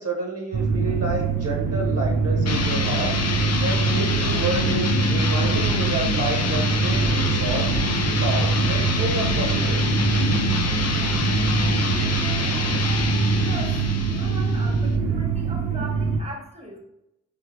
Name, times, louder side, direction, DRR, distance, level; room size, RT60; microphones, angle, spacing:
voice 1, 0.0-3.1 3.6-7.6 8.2-10.1, right 2 dB, 50° right, -2 dB, 0.8 m, -30 dB
sound 1, 0.5-16.2, right 5 dB, 90° right, 0.5 m, -24 dB
sound 2, 2.4-15.0, left 4 dB, 55° left, 0.5 m, -26 dB
voice 2, 13.4-16.8, right 1 dB, 20° right, 0 dB, 1.1 m, -39 dB
3.6 x 3.5 x 2.9 m, 0.87 s
wide cardioid pair, 60°, 31 cm